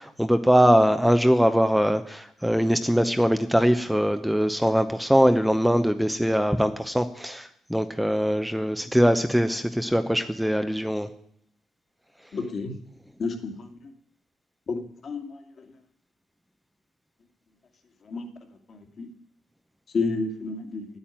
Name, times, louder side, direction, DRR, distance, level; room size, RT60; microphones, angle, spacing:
voice 1, 0.0-11.1, equal, ahead, 9 dB, 0.8 m, -22 dB
voice 2, 12.3-12.7 13.2-13.7 14.7-14.8 15.0-15.3 18.1-18.3 18.7-19.1 19.9-20.9, left 3 dB, 50° left, 5 dB, 2.3 m, -29 dB
9.1 x 8.8 x 9.0 m, 0.67 s
cardioid pair, 90°, 0 cm